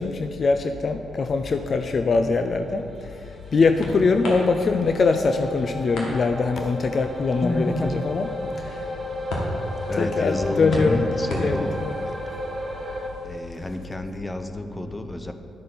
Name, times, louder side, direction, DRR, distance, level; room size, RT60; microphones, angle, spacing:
voice 1, 0.0-8.2 8.6-8.9 10.0-11.1 11.4-11.9, left 4 dB, 50° left, 7 dB, 0.4 m, -23 dB
sound 1, 2.7-13.8, left 1 dB, 75° left, 1.5 m, -37 dB
sound 2, 2.7-13.1, left 1 dB, 30° right, 1.7 m, -34 dB
voice 2, 7.4-7.9 9.9-11.8 12.1-12.2 13.2-15.3, left 1 dB, 20° left, 7 dB, 0.8 m, -29 dB
10.5 x 6.4 x 4.1 m, 2.6 s
hypercardioid pair, 45°, 0 cm